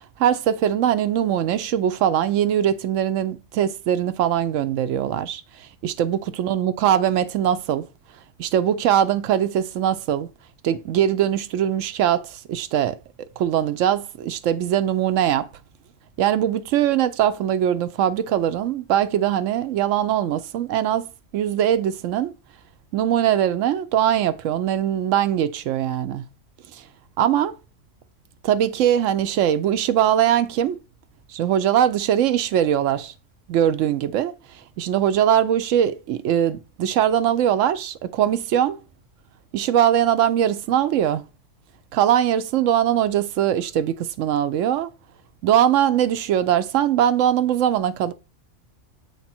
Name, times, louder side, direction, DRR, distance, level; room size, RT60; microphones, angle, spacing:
voice 1, 0.2-5.4 5.8-7.9 8.4-10.3 10.6-13.0 13.4-15.5 16.2-21.1 21.3-22.3 22.9-26.2 27.2-27.5 28.4-30.8 31.3-33.1 33.5-34.3 34.8-38.8 39.5-41.2 41.9-44.9 45.4-48.1, right 10 dB, 85° right, 1.0 m, -21 dB
7.2 x 3.3 x 4.3 m
omnidirectional pair, 1.3 m